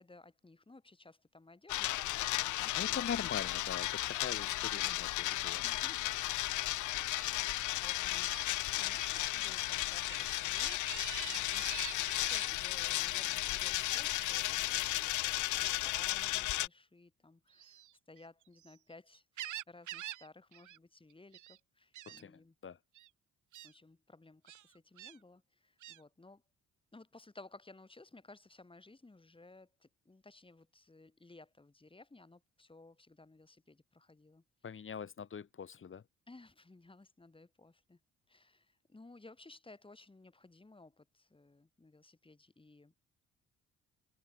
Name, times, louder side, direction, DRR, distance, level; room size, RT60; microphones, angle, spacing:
voice 1, 0.0-3.2 4.8-5.1 5.6-6.2 7.2-8.4 8.7-10.8 11.2-22.6 23.6-26.4 26.9-34.4 36.3-38.0 38.3-42.9, left 2 dB, 15° left, 5.3 m, -58 dB
sound 1, 1.7-16.7, left 16 dB, 80° left, 0.7 m, -34 dB
voice 2, 2.8-5.6 22.1-22.8 34.6-36.0, left 7 dB, 40° left, 2.4 m, -42 dB
Gull seagull, 7.1-7.3 8.2-8.5 9.0-9.3 9.7-12.5 13.8-14.5 15.4-15.6 17.5-18.8 19.1-20.3 20.5-20.8 21.1-21.6 21.9-22.2 22.9-23.1 23.5-23.7 24.5-25.2 25.8-26.0, right 13 dB, 75° right, 2.0 m, -47 dB
cardioid pair, 90°, 30 cm